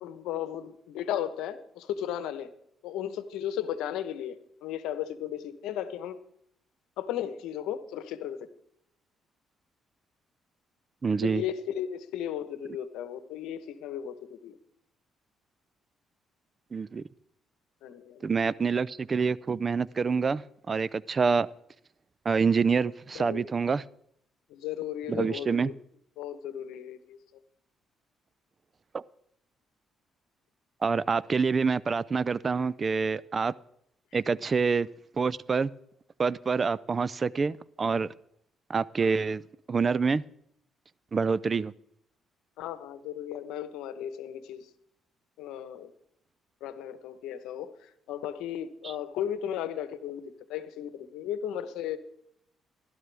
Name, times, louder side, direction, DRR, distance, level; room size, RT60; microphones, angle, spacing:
voice 1, 0.0-2.5 2.8-6.2 7.0-8.5 11.2-14.6 17.8-18.3 23.1-23.4 24.5-25.7 26.2-27.2 42.6-44.7 45.4-45.9 46.6-52.0, left 10 dB, 85° left, 11 dB, 1.0 m, -35 dB
voice 2, 11.0-11.4 16.7-17.0 18.2-21.5 22.3-23.8 25.1-25.7 28.9-29.0 30.8-33.5 34.1-34.9 35.2-35.7 36.2-38.1 38.7-39.4 39.7-40.2 41.1-41.7, right 5 dB, 40° right, 21 dB, 0.4 m, -26 dB
16.0 x 12.5 x 3.4 m, 0.72 s
supercardioid pair, 70°, 0 cm